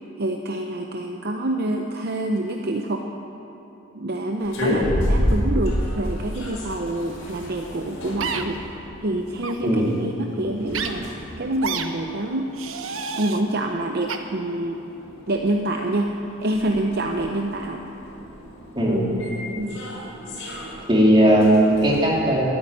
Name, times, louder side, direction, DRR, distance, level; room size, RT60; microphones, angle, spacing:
voice 1, 0.2-3.0 4.0-11.0 11.4-12.5 13.2-14.8 15.3-16.1 16.4-17.8 19.6-19.8, right 1 dB, 50° right, 3 dB, 0.7 m, -27 dB
sound 1, 4.4-22.1, equal, 75° left, 4.4 m, -31 dB
sound 2, 8.2-8.4 9.4-9.6 10.7-10.9 11.6-11.9 12.5-13.4 14.1-14.2, right 6 dB, 85° right, 1.0 m, -29 dB
voice 2, 18.7-19.1 20.9-22.6, right 1 dB, 25° right, -4 dB, 3.1 m, -18 dB
14.0 x 8.8 x 9.8 m, 3.0 s
head